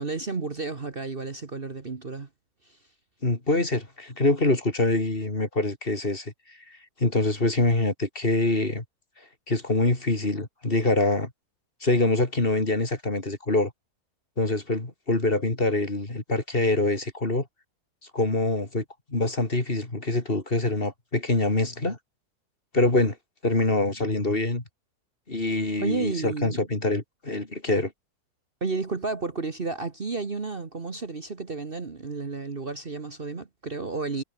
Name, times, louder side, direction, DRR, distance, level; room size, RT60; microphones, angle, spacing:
voice 1, 0.0-2.3 2.6-2.8 25.8-26.6 28.6-34.2, right 4 dB, 35° right, 1.7 m, -32 dB
voice 2, 3.2-8.8 9.5-11.3 11.8-13.7 14.4-17.5 18.1-18.8 19.1-22.0 22.7-23.2 23.4-24.6 25.3-27.9, left 2 dB, 35° left, 3.6 m, -25 dB
omnidirectional pair, 1.7 m